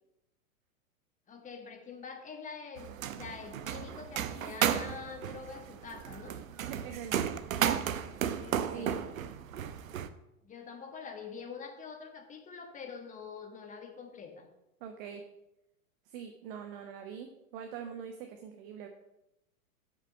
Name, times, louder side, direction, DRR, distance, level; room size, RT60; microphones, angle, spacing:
voice 1, 1.3-6.4 8.4-9.2 9.5-9.7 10.4-14.5, left 5 dB, 15° left, 4 dB, 1.5 m, -45 dB
sound 1, 2.8-10.1, right 9 dB, 65° right, 0.8 m, -34 dB
voice 2, 6.6-7.4 8.7-8.9 14.8-15.3 16.0-18.9, right 7 dB, 40° right, 4 dB, 1.1 m, -43 dB
7.7 x 5.9 x 6.1 m, 0.87 s
figure-of-eight pair, 105°, 44 cm